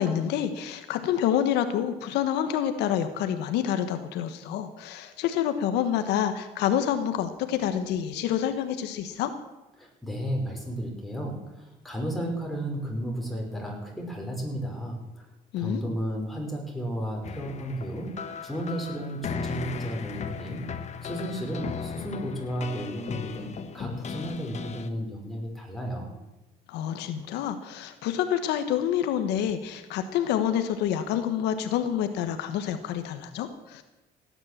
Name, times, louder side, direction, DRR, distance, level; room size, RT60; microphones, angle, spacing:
voice 1, 0.0-9.3 15.5-15.8 26.7-33.8, left 10 dB, 85° left, 9 dB, 1.3 m, -27 dB
voice 2, 9.8-15.2 15.6-18.1 18.4-20.6 21.0-26.2, equal, ahead, -1 dB, 5.1 m, -33 dB
sound 1, 17.2-24.9, left 6 dB, 40° left, 1.3 m, -37 dB
17.0 x 9.8 x 7.4 m, 1.0 s
cardioid pair, 110°, 17 cm